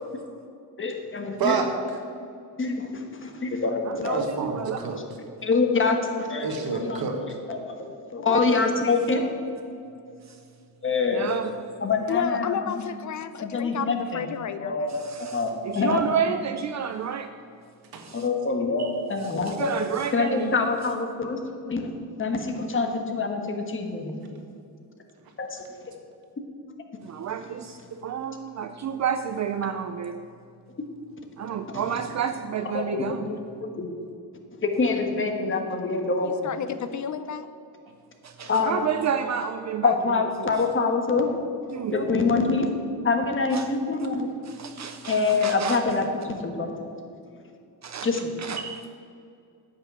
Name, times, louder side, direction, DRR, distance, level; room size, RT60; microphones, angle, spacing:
voice 1, 0.8-1.6 2.6-4.2 5.4-7.0 7.5-9.2 10.8-11.3 11.8-12.8 13.4-14.2 14.6-15.0 15.3-16.1 18.1-19.7 20.1-21.4 21.6-21.8 22.2-24.2 25.4-25.6 31.7-31.8 32.6-33.4 33.6-33.9 34.6-36.5 38.4-38.8 39.8-41.3 41.9-42.7 43.0-44.3 45.1-46.1 46.4-46.7 48.0-48.3, left 4 dB, 30° left, 4 dB, 1.4 m, -25 dB
voice 2, 1.4-2.0 4.1-5.0 6.4-7.4 17.9-18.1 27.9-28.0, right 4 dB, 60° right, 4 dB, 1.8 m, -29 dB
voice 3, 3.9-5.0 10.2-10.4 11.1-11.5 14.9-17.3 18.0-18.3 18.8-18.9 19.2-20.6 27.0-30.3 31.4-33.3 38.2-40.5 41.7-42.0 43.5-43.7 44.4-45.8 47.8-48.9, right 8 dB, 45° right, 9 dB, 0.5 m, -31 dB
voice 4, 8.2-8.8 12.1-15.1 31.4-31.6 36.2-37.5, left 8 dB, 45° left, 12 dB, 0.5 m, -32 dB
9.9 x 6.0 x 8.7 m, 2.4 s
cardioid pair, 125°, 40 cm